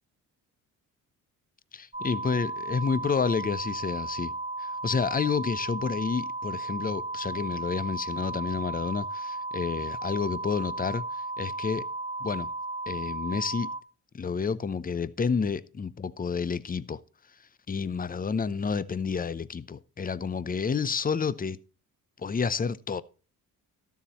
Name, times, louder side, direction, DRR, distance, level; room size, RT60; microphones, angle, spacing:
voice 1, 1.7-4.3 4.6-11.9 12.2-12.5 12.9-13.7 14.1-17.0 17.7-21.6 22.2-23.0, left 5 dB, 25° left, 0.6 m, -30 dB
sound 1, 1.9-13.8, right 2 dB, 20° right, 1.8 m, -35 dB
12.5 x 7.2 x 4.3 m
cardioid pair, 70°, 38 cm